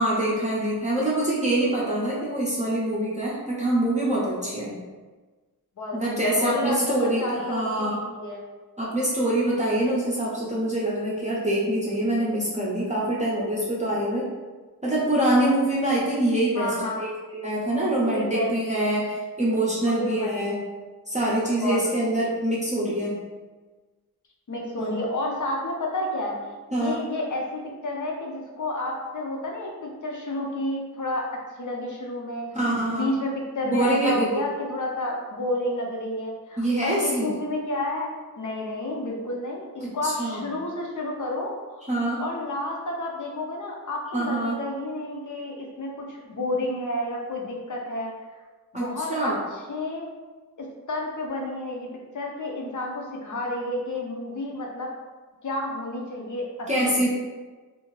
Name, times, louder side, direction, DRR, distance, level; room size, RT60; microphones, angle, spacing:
voice 1, 0.0-4.8 5.9-8.0 8.8-14.3 14.8-20.6 21.1-23.2 24.8-25.0 26.7-27.0 32.5-33.1 33.7-34.5 36.6-37.4 39.8-40.5 41.9-42.2 44.1-44.6 48.7-49.4 56.7-57.1, right 1 dB, 20° right, -7 dB, 0.6 m, -25 dB
voice 2, 5.8-7.6 7.9-8.4 16.5-17.0 18.0-18.9 19.8-20.4 21.6-21.8 24.5-26.5 26.8-32.5 32.9-38.1 38.4-41.9 42.2-48.1 48.7-49.3 49.7-50.1 50.6-51.9 52.1-54.9 55.4-57.1, left 1 dB, 55° left, -1 dB, 0.6 m, -30 dB
2.7 x 2.4 x 3.1 m, 1.3 s
wide cardioid pair, 115°, 37 cm